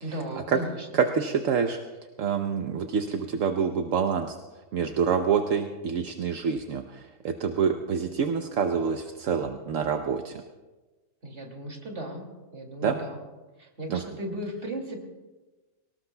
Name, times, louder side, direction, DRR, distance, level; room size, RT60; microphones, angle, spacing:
voice 1, 0.0-1.0 11.2-12.2 12.5-13.2 13.6-15.0, right 1 dB, 50° right, 1 dB, 2.7 m, -36 dB
voice 2, 0.9-1.8 2.2-4.4 4.7-10.4 12.8-13.0 13.9-14.0, right 6 dB, 70° right, 6 dB, 1.1 m, -26 dB
24.5 x 18.5 x 2.2 m, 1.2 s
omnidirectional pair, 1.5 m